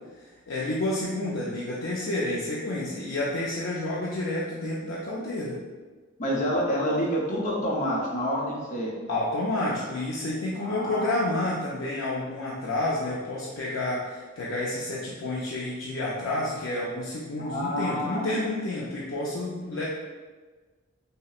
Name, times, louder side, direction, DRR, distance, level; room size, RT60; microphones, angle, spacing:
voice 1, 0.1-5.6 9.1-19.8, left 2 dB, 75° left, -5 dB, 0.5 m, -30 dB
voice 2, 6.2-8.9 10.6-11.1 17.4-18.3, equal, 40° left, -4 dB, 0.7 m, -28 dB
5.5 x 2.1 x 2.4 m, 1.4 s
head